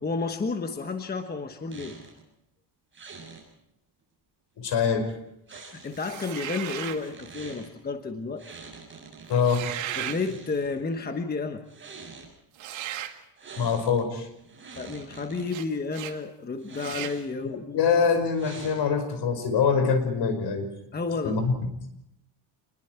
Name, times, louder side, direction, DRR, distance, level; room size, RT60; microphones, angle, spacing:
voice 1, 0.0-2.0 5.5-8.4 10.0-11.6 14.7-17.8 20.9-21.4, left 4 dB, 20° left, 6 dB, 1.2 m, -31 dB
sound 1, 1.7-2.2 2.9-3.4 5.5-6.2 6.8-7.7 8.4-9.4 9.8-10.8 11.6-12.3 13.4-14.0 14.4-15.5 16.6-17.4 18.3-19.1, right 4 dB, 25° right, 7.4 m, -45 dB
voice 2, 4.6-5.1 9.3-9.6 13.6-14.3 17.7-20.7 21.2-21.5, left 6 dB, 60° left, 8 dB, 5.3 m, -24 dB
sound 2, 6.0-7.0 9.3-10.2 12.6-13.2 15.5-15.7 15.9-16.2 16.8-17.2, right 12 dB, 75° right, 2.1 m, -35 dB
28.5 x 21.5 x 4.6 m, 0.83 s
cardioid pair, 145°, 47 cm